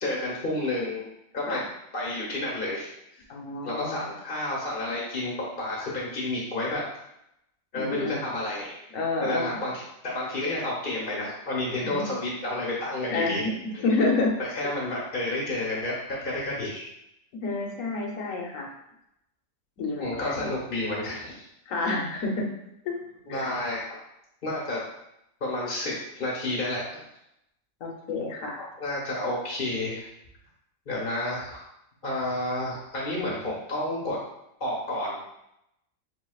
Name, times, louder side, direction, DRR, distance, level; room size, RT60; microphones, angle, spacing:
voice 1, 0.0-1.0 1.3-1.6 1.9-2.9 3.6-6.8 7.7-8.8 9.2-13.5 14.4-16.9 20.0-21.5 23.3-23.8 24.4-24.8 25.4-27.0 28.8-30.1 30.9-31.6 32.0-34.2 34.6-35.2, left 1 dB, 40° left, -4 dB, 1.2 m, -30 dB
voice 2, 3.3-4.0 7.8-8.2 8.9-9.5 11.8-12.0 13.1-14.4 17.4-18.7 19.8-20.5 21.7-22.5 22.8-23.0 23.3-23.5 27.8-28.7, left 3 dB, 75° left, 0 dB, 1.3 m, -29 dB
7.5 x 2.8 x 2.3 m, 0.81 s
omnidirectional pair, 1.4 m